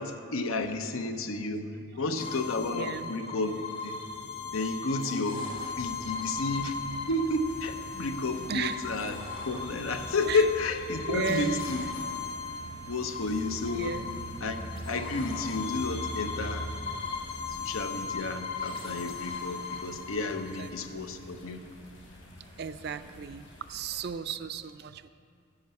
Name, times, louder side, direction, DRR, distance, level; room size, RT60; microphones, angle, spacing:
voice 1, 0.0-3.5 3.8-4.0 4.5-6.8 7.1-11.8 12.9-13.9 14.4-16.7 17.6-21.6, left 2 dB, 85° left, 7 dB, 0.8 m, -31 dB
sound 1, 2.2-20.7, left 5 dB, 45° left, 1.7 m, -38 dB
voice 2, 2.7-3.1 8.5-8.9 10.3-10.4 11.1-11.7 13.7-14.1 20.6-20.7 22.6-25.1, right 6 dB, 50° right, 12 dB, 0.4 m, -35 dB
sound 2, 5.5-24.1, right 1 dB, 60° left, 2.3 m, -45 dB
9.9 x 6.6 x 8.2 m, 2.3 s
head